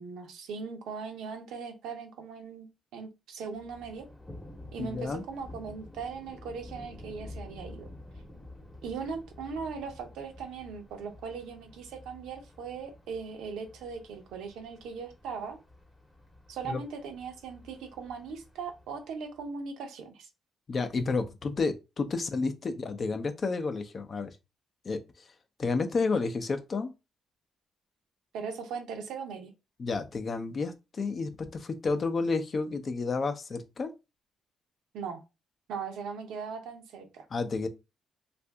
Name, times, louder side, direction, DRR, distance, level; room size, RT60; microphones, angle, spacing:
voice 1, 0.0-2.7 2.9-4.1 4.7-7.9 8.8-15.6 16.5-20.3 28.3-29.5 34.9-35.2 35.7-37.3, right 5 dB, 85° right, 0.7 m, -39 dB
Thunder, 3.5-19.5, left 1 dB, 15° left, 0.9 m, -50 dB
voice 2, 4.8-5.2 16.7-16.8 20.7-24.4 24.8-25.3 25.6-26.9 29.8-33.9 37.3-37.7, left 4 dB, 40° left, 0.5 m, -31 dB
2.7 x 2.5 x 3.4 m
cardioid pair, 90°, 0 cm